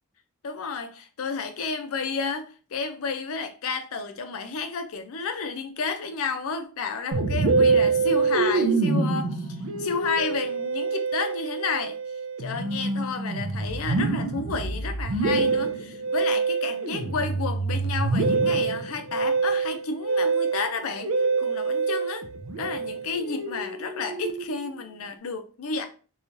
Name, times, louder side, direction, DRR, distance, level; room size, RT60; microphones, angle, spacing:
voice 1, 0.4-12.0 12.4-21.1 21.4-22.2 22.6-25.9, left 5 dB, 75° left, 0.5 m, -31 dB
Musical instrument, 7.1-24.7, right 4 dB, 70° right, 0.5 m, -26 dB
3.0 x 2.3 x 2.6 m
head